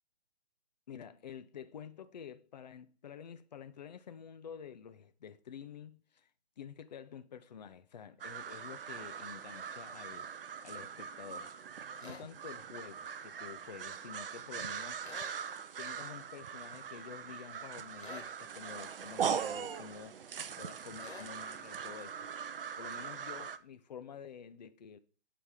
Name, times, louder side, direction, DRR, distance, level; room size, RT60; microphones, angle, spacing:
voice 1, 0.9-6.3 6.6-11.6 12.0-15.0 15.8-20.2 20.5-22.3 22.8-25.0, left 8 dB, 40° left, 0.5 m, -49 dB
sound 1, 8.2-23.6, right 7 dB, 55° right, 0.5 m, -41 dB
sound 2, 12.0-12.3 15.0-15.4 18.0-18.3 21.0-21.3, left 4 dB, 65° left, 1.6 m, -48 dB
7.9 x 3.3 x 4.9 m
figure-of-eight pair, 135°, 34 cm